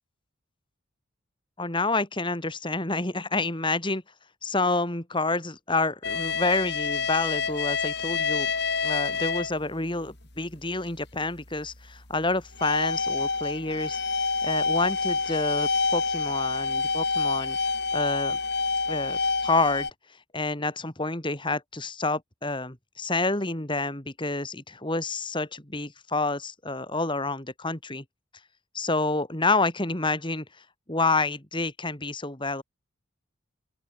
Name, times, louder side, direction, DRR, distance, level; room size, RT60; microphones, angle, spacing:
voice 1, 1.6-4.0 4.4-8.5 8.8-14.0 14.4-17.6 17.9-18.4 18.9-19.9 20.3-28.0 28.7-30.4 30.9-32.6, left 3 dB, 25° left, 2.9 m, -28 dB
sound 1, 6.0-9.6 10.1-10.2 10.9-11.0 12.3-19.9, left 4 dB, 50° left, 6.1 m, -27 dB
open air
head